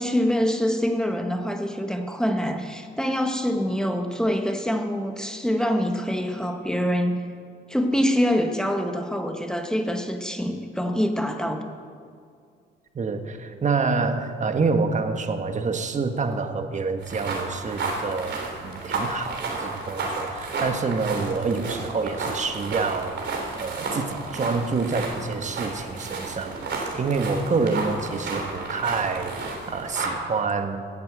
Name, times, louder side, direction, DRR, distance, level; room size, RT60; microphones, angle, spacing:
voice 1, 0.0-7.2 7.7-11.6, equal, 5° left, 4 dB, 1.3 m, -25 dB
voice 2, 12.9-30.9, right 4 dB, 35° right, 7 dB, 1.4 m, -27 dB
sound 1, 17.0-30.1, right 3 dB, 60° right, 3.5 m, -32 dB
17.5 x 8.6 x 7.6 m, 2.2 s
cardioid pair, 90°, 20 cm